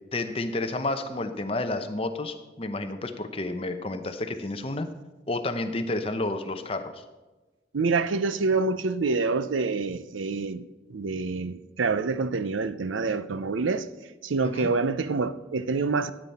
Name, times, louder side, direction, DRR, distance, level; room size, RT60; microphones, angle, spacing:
voice 1, 0.1-4.9 5.3-7.0 14.4-14.7, left 2 dB, 30° left, 0.7 m, -30 dB
voice 2, 7.7-10.6 10.9-13.9 14.2-16.1, right 4 dB, 85° right, 0.6 m, -26 dB
13.5 x 8.6 x 4.2 m
head